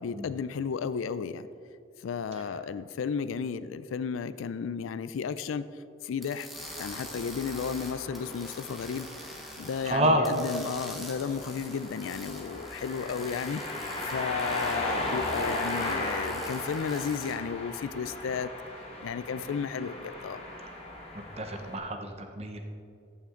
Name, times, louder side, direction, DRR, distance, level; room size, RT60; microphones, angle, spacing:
voice 1, 0.0-1.5 2.0-5.6 6.0-6.5 6.7-9.1 9.6-18.5 19.0-20.4, left 6 dB, 85° left, 15 dB, 0.4 m, -33 dB
sound 1, 6.2-9.9 10.2-17.3, equal, ahead, 1.0 m, -46 dB
sound 2, 6.5-21.8, left 2 dB, 30° left, 1.6 m, -37 dB
voice 2, 9.8-10.3 20.6-20.7 21.4-22.6, right 1 dB, 30° right, 5 dB, 0.8 m, -28 dB
14.5 x 5.8 x 3.8 m, 2.4 s
head